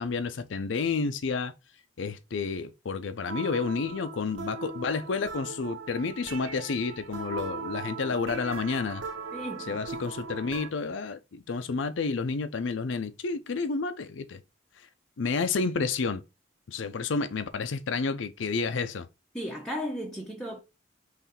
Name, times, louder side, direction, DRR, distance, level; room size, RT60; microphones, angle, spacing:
voice 1, 0.0-1.5 2.0-9.0 9.7-14.4 15.2-16.2 16.7-19.1, left 4 dB, 75° left, 0.5 m, -30 dB
sound 1, 3.3-10.7, right 4 dB, 75° right, 0.6 m, -39 dB
voice 2, 9.3-9.8 19.3-20.6, equal, 5° left, 0.6 m, -35 dB
3.9 x 3.1 x 4.2 m
head